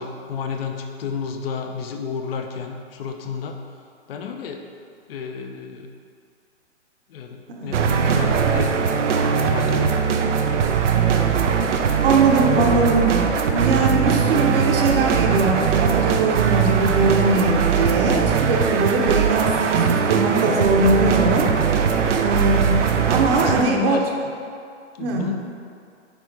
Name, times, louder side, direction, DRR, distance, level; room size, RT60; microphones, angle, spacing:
voice 1, 0.0-3.6 4.1-4.7 5.1-5.9 7.1-8.7 9.4-10.2 23.2-24.1 25.0-25.3, left 6 dB, 55° left, 4 dB, 0.8 m, -31 dB
voice 2, 7.5-7.8 12.0-13.1 13.5-21.5 22.1-22.8 23.1-24.0 25.0-25.3, right 3 dB, 50° right, 1 dB, 1.1 m, -21 dB
sound 1, 7.7-23.6, right 6 dB, 75° right, 0.7 m, -20 dB
9.5 x 3.3 x 4.7 m, 2.3 s
hypercardioid pair, 135°, 36 cm